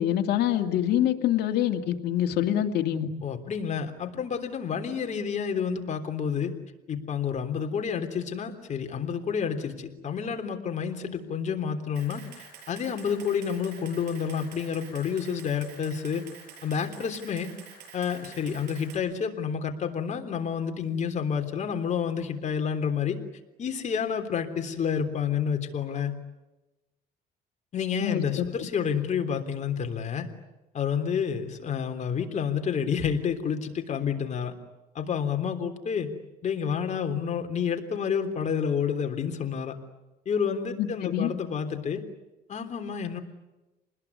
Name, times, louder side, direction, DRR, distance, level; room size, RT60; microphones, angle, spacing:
voice 1, 0.0-3.1 28.0-28.4 40.8-41.3, left 11 dB, 75° left, 5 dB, 2.4 m, -25 dB
voice 2, 3.2-6.5 6.9-16.2 16.6-17.5 17.9-23.2 23.6-26.1 27.7-30.3 30.7-34.5 34.9-36.1 36.4-39.7 40.2-42.0 42.5-43.2, left 7 dB, 45° left, 5 dB, 3.4 m, -29 dB
Camera, 11.9-19.0, right 6 dB, 80° right, 7.3 m, -48 dB
28.5 x 20.5 x 9.8 m, 1.0 s
cardioid pair, 110°, 17 cm